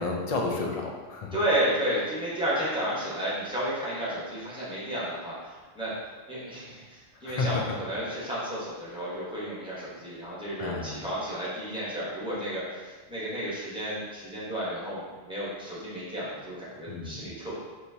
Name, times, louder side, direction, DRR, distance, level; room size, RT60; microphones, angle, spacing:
voice 1, 0.0-1.4 7.2-7.6 10.6-11.0 16.9-17.3, left 3 dB, 45° left, 1 dB, 0.5 m, -31 dB
voice 2, 1.3-6.0 6.3-17.5, right 1 dB, 5° right, -9 dB, 1.2 m, -32 dB
4.3 x 3.2 x 2.7 m, 1.4 s
omnidirectional pair, 1.2 m